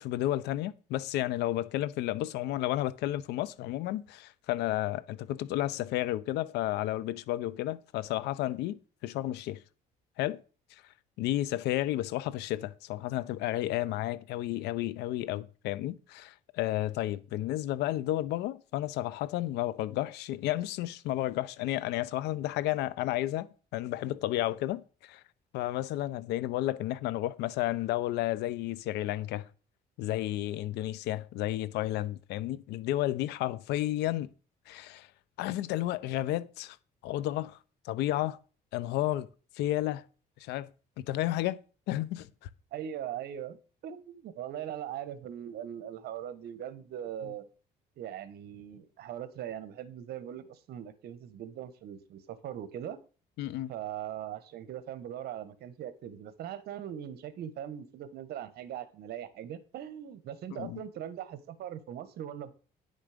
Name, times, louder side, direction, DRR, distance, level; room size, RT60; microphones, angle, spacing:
voice 1, 0.0-9.6 10.2-10.4 11.2-23.5 23.7-25.2 25.5-29.5 30.0-34.3 34.7-35.1 35.4-36.8 37.0-37.6 37.8-38.4 38.7-39.3 39.6-40.0 40.4-40.7 41.0-41.6 41.9-42.5 53.4-53.7 60.5-60.8, left 14 dB, 85° left, 0.8 m, -32 dB
voice 2, 42.7-43.6 43.8-47.5 48.0-53.0 53.7-62.5, right 10 dB, 70° right, 1.4 m, -40 dB
10.0 x 6.4 x 5.1 m
cardioid pair, 110°, 17 cm